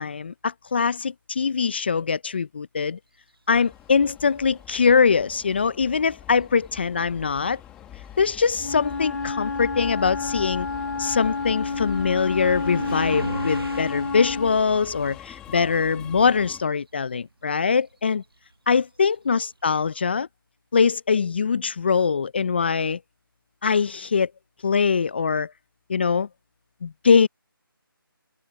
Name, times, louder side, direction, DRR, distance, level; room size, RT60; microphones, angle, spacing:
voice 1, 0.0-3.0 3.5-7.6 8.2-10.7 11.0-18.2 18.7-20.3 20.7-23.0 23.6-24.3 24.6-25.5 25.9-26.3 26.8-27.3, left 5 dB, 25° left, 0.6 m, -22 dB
Subway metro underground, 3.5-16.6, left 12 dB, 5° left, 2.1 m, -44 dB
sound 1, 4.4-5.0 6.0-6.1 6.6-16.6 16.8-19.5, right 2 dB, 85° right, 1.2 m, -40 dB
Wind instrument woodwind instrument, 8.6-14.6, left 4 dB, 60° left, 1.0 m, -29 dB
figure-of-eight pair, 165°, 12 cm